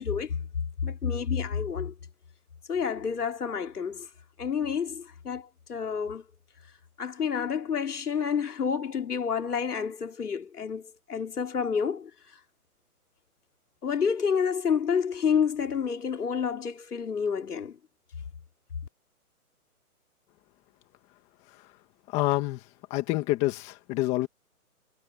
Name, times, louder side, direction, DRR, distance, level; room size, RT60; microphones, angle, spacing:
voice 1, 0.0-1.9 2.7-4.1 4.4-6.2 7.0-12.1 13.8-17.8, left 6 dB, 90° left, 3.3 m, -29 dB
voice 2, 22.1-22.6 22.9-24.3, left 18 dB, 15° left, 1.6 m, -27 dB
hypercardioid pair, 165°, 45 cm